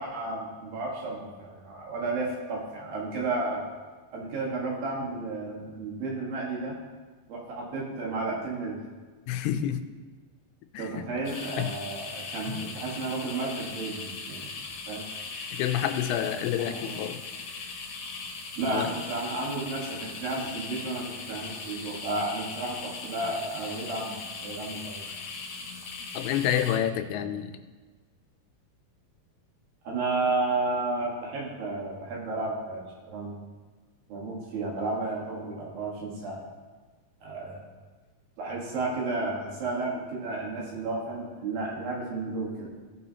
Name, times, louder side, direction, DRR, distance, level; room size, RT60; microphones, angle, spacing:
voice 1, 0.0-3.6 4.1-6.7 7.3-8.7 10.8-14.5 14.9-15.0 16.4-17.0 18.6-25.0 29.8-33.3 34.1-36.4 37.2-37.6 38.4-42.7, right 2 dB, 70° right, -3 dB, 3.2 m, -32 dB
voice 2, 9.3-9.8 10.7-11.0 11.6-11.7 15.5-17.2 18.7-18.9 26.1-27.5, left 10 dB, 90° left, 8 dB, 2.6 m, -28 dB
sound 1, 11.2-26.8, left 4 dB, 70° left, 1.4 m, -39 dB
15.5 x 5.5 x 2.8 m, 1.4 s
omnidirectional pair, 4.5 m